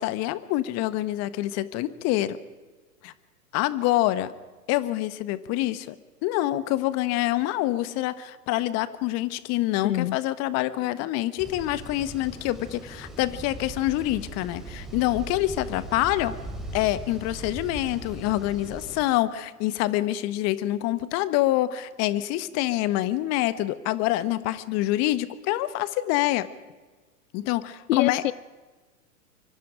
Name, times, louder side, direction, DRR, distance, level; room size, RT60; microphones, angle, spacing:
voice 1, 0.0-2.4 3.0-3.1 3.5-4.3 4.7-6.0 6.2-16.3 16.7-26.5 27.3-28.2, left 15 dB, 35° left, 1.2 m, -26 dB
voice 2, 9.8-10.2 27.9-28.3, left 15 dB, 55° left, 0.7 m, -25 dB
sound 1, 11.4-19.0, right 1 dB, ahead, 4.4 m, -39 dB
24.5 x 23.5 x 5.0 m
hypercardioid pair, 110°, 47 cm